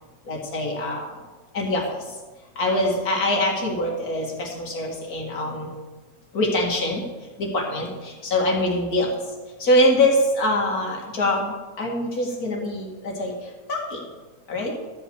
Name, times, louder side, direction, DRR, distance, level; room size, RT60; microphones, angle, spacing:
voice 1, 0.3-1.1 1.5-1.8 2.6-5.7 6.3-7.0 7.4-9.1 9.6-13.3 13.7-14.0 14.5-14.7, left 1 dB, 85° left, -2 dB, 2.4 m, -23 dB
12.5 x 5.3 x 8.1 m, 1.3 s
omnidirectional pair, 1.5 m